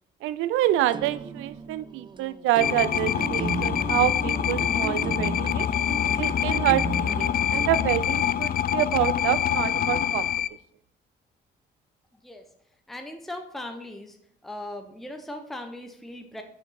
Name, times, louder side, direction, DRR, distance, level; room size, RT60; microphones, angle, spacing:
voice 1, 0.2-5.7 6.2-10.3, right 14 dB, 90° right, 16 dB, 0.4 m, -27 dB
sound 1, 0.8-8.5, right 5 dB, 25° right, 0.4 m, -36 dB
sound 2, 2.6-10.5, left 10 dB, 45° left, 0.4 m, -26 dB
sound 3, 3.0-8.0, left 5 dB, 70° left, 2.1 m, -35 dB
voice 2, 12.9-14.2 14.4-16.4, left 1 dB, ahead, 4 dB, 0.8 m, -38 dB
6.0 x 5.8 x 4.2 m, 0.71 s
cardioid pair, 90°, 20 cm